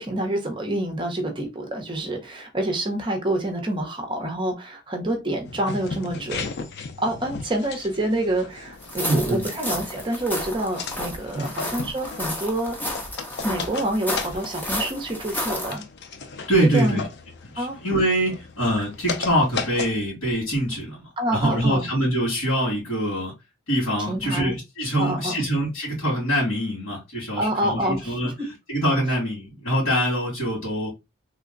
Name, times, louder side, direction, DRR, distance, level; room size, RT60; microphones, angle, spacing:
voice 1, 0.0-6.5 7.0-12.8 13.4-15.9 16.7-17.0 17.6-17.8 21.2-21.9 24.1-24.6 25.0-25.3 27.3-28.3, right 1 dB, 25° right, 0.7 m, -27 dB
sound 1, 5.4-19.9, left 4 dB, 55° left, 0.5 m, -36 dB
sound 2, 8.8-15.8, left 1 dB, 10° left, 0.7 m, -32 dB
voice 2, 9.0-9.4 11.3-11.5 16.5-17.0 17.5-23.3 23.7-28.3 28.7-30.9, equal, 85° left, 2.0 m, -24 dB
3.3 x 2.1 x 3.7 m
head